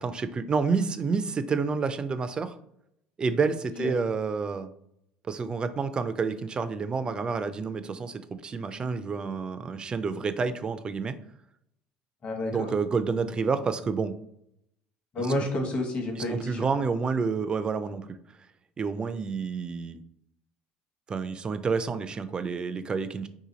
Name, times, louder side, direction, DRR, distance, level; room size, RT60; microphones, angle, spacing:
voice 1, 0.0-2.5 3.2-4.7 5.3-11.1 12.5-14.2 15.2-15.3 16.3-18.1 18.8-20.0 21.1-23.3, right 5 dB, 25° right, 11 dB, 0.3 m, -29 dB
voice 2, 12.2-12.7 15.1-16.7, left 1 dB, 40° left, 2 dB, 1.0 m, -30 dB
2.8 x 2.5 x 3.9 m, 0.74 s
supercardioid pair, 100°, 3 cm